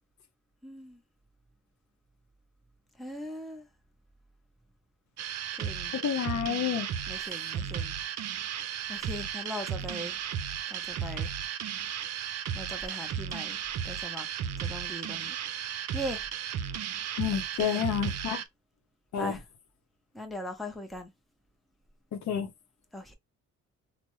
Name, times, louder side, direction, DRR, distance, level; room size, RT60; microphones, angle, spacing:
voice 1, 0.6-1.0 3.0-3.7 5.6-5.9 7.1-7.9 8.9-10.2 10.7-11.4 12.5-13.6 13.8-14.3 14.6-15.4 15.9-16.3 17.6-17.8 19.2-19.4 20.1-21.1 22.9-23.2, left 1 dB, ahead, 0.7 m, -39 dB
sound 1, 5.2-18.4, right 8 dB, 60° right, 0.5 m, -35 dB
voice 2, 5.9-6.9 17.2-18.4 19.1-19.4 22.1-22.5, left 8 dB, 65° left, 0.7 m, -29 dB
3.4 x 2.1 x 3.0 m
cardioid pair, 90°, 30 cm